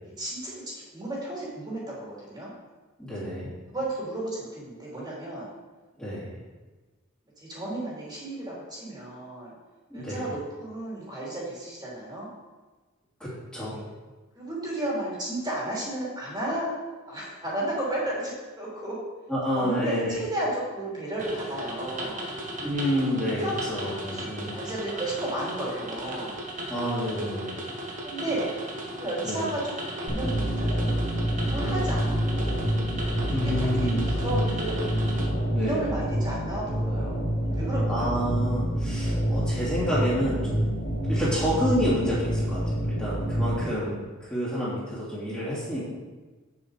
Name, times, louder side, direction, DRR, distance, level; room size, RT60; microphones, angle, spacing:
voice 1, 0.0-0.6 0.9-2.5 3.7-5.5 7.4-9.5 9.9-12.3 13.7-13.8 14.3-16.7 17.1-19.0 19.5-22.3 23.3-23.5 24.1-26.4 28.0-28.5 29.0-30.9 31.5-32.6 33.4-34.9 35.5-38.2, right 1 dB, 20° right, -6 dB, 3.2 m, -33 dB
voice 2, 3.0-3.5 6.0-6.3 9.9-10.2 13.2-13.8 19.3-20.2 22.6-24.6 26.7-27.6 29.2-29.4 31.6-31.8 33.3-34.1 35.5-35.8 37.9-40.6 41.1-45.8, equal, 5° left, -10 dB, 2.9 m, -29 dB
sound 1, 21.2-35.3, right 1 dB, 40° right, 1.6 m, -36 dB
sound 2, 30.1-43.6, equal, 60° left, 2.9 m, -27 dB
8.4 x 7.1 x 5.0 m, 1.3 s
head